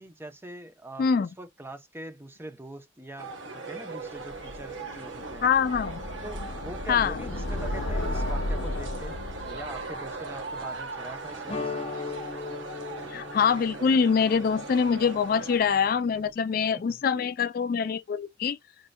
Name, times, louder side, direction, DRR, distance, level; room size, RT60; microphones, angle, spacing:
voice 1, 0.0-5.5 6.2-9.2 9.4-11.9 16.7-17.3, right 1 dB, 10° right, 0.7 m, -43 dB
voice 2, 1.0-1.3 5.4-6.0 6.9-7.2 13.1-18.6, left 6 dB, 50° left, 0.3 m, -24 dB
sound 1, 3.2-15.6, right 3 dB, 90° right, 1.2 m, -39 dB
sound 2, 4.3-11.3, left 1 dB, 80° left, 0.7 m, -35 dB
sound 3, 11.5-16.3, left 4 dB, 30° left, 0.9 m, -39 dB
5.1 x 2.7 x 2.2 m
head